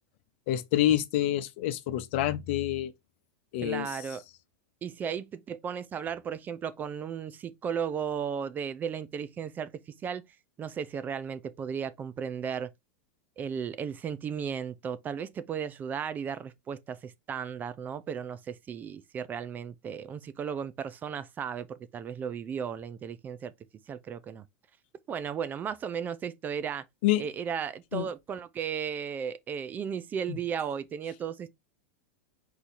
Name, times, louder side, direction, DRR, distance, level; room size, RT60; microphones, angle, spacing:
voice 1, 0.5-2.9 3.5-3.9 27.0-27.2 27.9-28.1 30.3-30.4, left 13 dB, 60° left, 0.7 m, -27 dB
voice 2, 3.6-4.2 4.8-9.7 10.0-10.2 10.6-12.7 13.4-23.5 23.9-24.5 25.1-26.8 27.2-31.5, right 7 dB, 25° right, 0.4 m, -35 dB
4.7 x 2.7 x 4.1 m
supercardioid pair, 125°, 7 cm